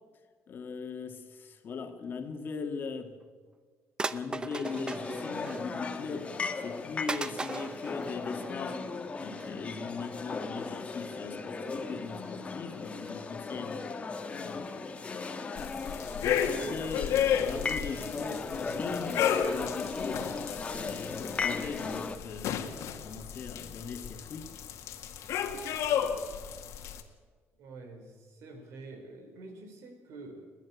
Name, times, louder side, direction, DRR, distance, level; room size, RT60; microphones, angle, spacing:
voice 1, 0.5-3.2 4.1-8.9 9.2-14.1 14.4-15.1 15.8-20.3 20.7-24.5, left 5 dB, 45° left, 2.0 m, -40 dB
sound 1, 3.2-3.3 4.0-6.0 6.4-6.5 7.1-8.9 9.3-9.5 9.9-10.1 10.7-10.8 11.1-11.2 11.9-12.3 12.7-13.1 13.5-13.9 14.2-14.3 14.5-14.6 15.0-15.1 15.3-15.4 15.6-15.7 15.9-16.0, right 3 dB, 15° right, 0.7 m, -39 dB
sound 2, 4.6-22.2, left 4 dB, 25° left, 1.3 m, -37 dB
sound 3, 15.6-27.0, left 8 dB, 85° left, 1.8 m, -33 dB
voice 2, 27.6-30.5, right 3 dB, 80° right, 4.2 m, -47 dB
30.0 x 10.5 x 8.3 m
cardioid pair, 150°, 5 cm